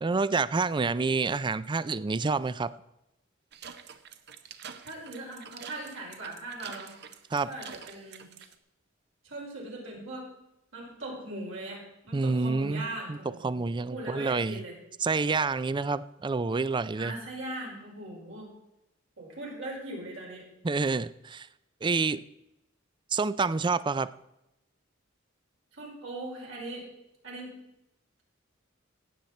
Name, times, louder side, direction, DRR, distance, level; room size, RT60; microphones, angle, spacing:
voice 1, 0.0-2.7 7.3-7.5 12.1-13.2 13.4-14.6 15.0-17.1 20.6-21.5 21.8-22.2 23.1-24.1, right 4 dB, 25° right, 17 dB, 0.4 m, -28 dB
sound 1, 3.5-8.5, right 7 dB, 55° right, 0.8 m, -46 dB
voice 2, 4.8-6.9 7.4-8.3 9.2-10.3 10.7-14.7 17.0-18.5 19.2-20.4 25.7-26.9 27.2-27.6, right 1 dB, 75° right, -3 dB, 5.1 m, -40 dB
16.5 x 7.9 x 4.2 m, 0.87 s
head